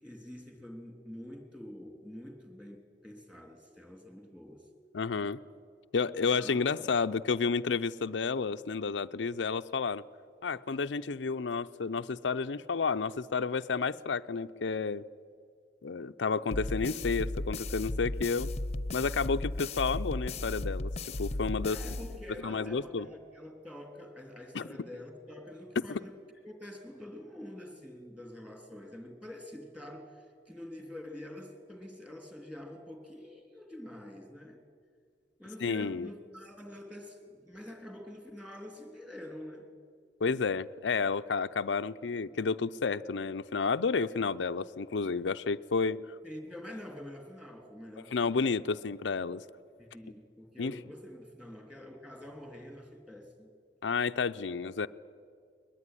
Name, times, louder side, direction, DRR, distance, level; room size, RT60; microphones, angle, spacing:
voice 1, 0.0-4.7 6.3-6.9 21.6-26.2 26.4-34.6 35.4-39.6 46.2-48.4 49.8-53.5, left 1 dB, 5° right, 3 dB, 3.5 m, -46 dB
voice 2, 4.9-5.4 5.9-10.0 10.4-15.0 15.8-18.5 18.9-20.9 21.2-21.8 22.4-23.1 24.5-24.6 35.6-36.1 40.2-46.0 48.1-49.4 50.6-50.8 53.8-54.9, left 5 dB, 90° left, 10 dB, 0.6 m, -31 dB
sound 1, 16.5-22.6, left 2 dB, 35° left, 0.9 m, -35 dB
21.5 x 20.5 x 10.0 m, 2.2 s
head